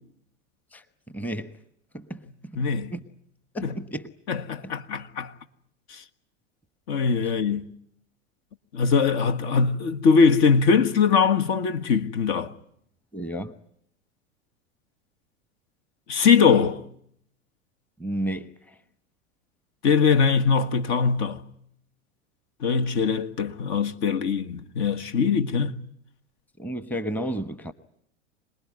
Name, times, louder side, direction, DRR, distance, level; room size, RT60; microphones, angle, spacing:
voice 1, 0.7-1.5 1.9-2.6 2.9-3.0 3.5-4.1 4.6-4.7 13.1-13.5 18.0-18.7 26.6-27.7, right 1 dB, 5° left, 1.1 m, -32 dB
voice 2, 2.6-2.9 3.6-3.8 4.3-5.3 5.9-6.0 6.9-7.7 8.7-12.5 16.1-16.8 19.8-21.4 22.6-25.8, left 5 dB, 55° left, 1.6 m, -22 dB
26.5 x 20.0 x 9.6 m
hypercardioid pair, 95°, 39 cm